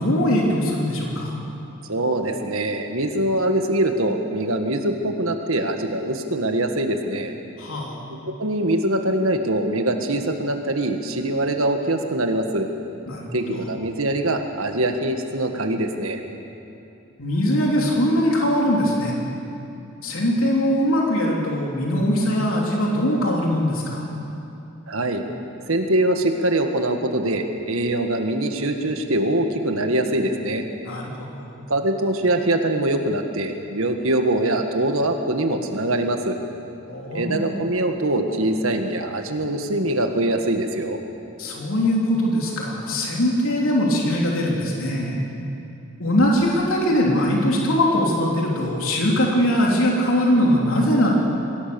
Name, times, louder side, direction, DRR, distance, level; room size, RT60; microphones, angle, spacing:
voice 1, 0.0-1.3 7.6-8.0 13.1-13.6 17.2-19.1 20.0-24.0 30.8-31.5 36.9-37.4 41.4-45.2 46.0-51.1, equal, 70° left, -2 dB, 3.4 m, -21 dB
voice 2, 1.9-7.3 8.3-12.7 13.3-16.2 24.9-25.2 25.7-30.6 31.7-36.4 37.1-41.0, right 1 dB, 70° right, 5 dB, 1.7 m, -23 dB
23.5 x 17.0 x 7.1 m, 2.9 s
head